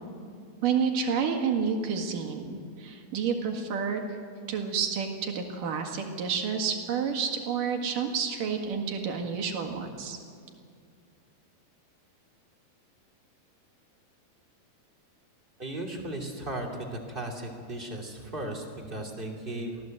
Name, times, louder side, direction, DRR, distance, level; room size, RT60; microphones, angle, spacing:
voice 1, 0.6-4.0 4.5-10.2, right 6 dB, 60° right, 3 dB, 3.2 m, -29 dB
voice 2, 15.6-19.8, right 1 dB, 15° right, 0 dB, 2.0 m, -36 dB
24.0 x 16.5 x 7.8 m, 2.2 s
omnidirectional pair, 4.5 m